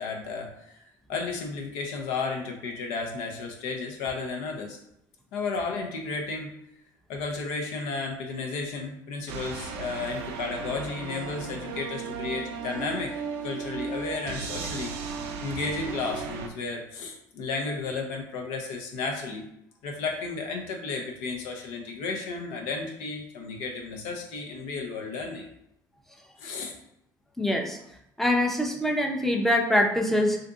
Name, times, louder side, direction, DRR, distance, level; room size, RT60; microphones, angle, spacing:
voice 1, 0.0-4.8 5.3-6.5 7.1-13.1 13.4-14.9 15.4-19.5 19.8-25.5 26.4-26.7, left 4 dB, 85° left, 2 dB, 0.6 m, -33 dB
sound 1, 9.3-16.5, right 5 dB, 80° right, 0.4 m, -35 dB
voice 2, 27.4-27.8 28.2-30.4, left 1 dB, 5° left, 2 dB, 0.6 m, -24 dB
2.6 x 2.5 x 3.5 m, 0.77 s
supercardioid pair, 90°, 9 cm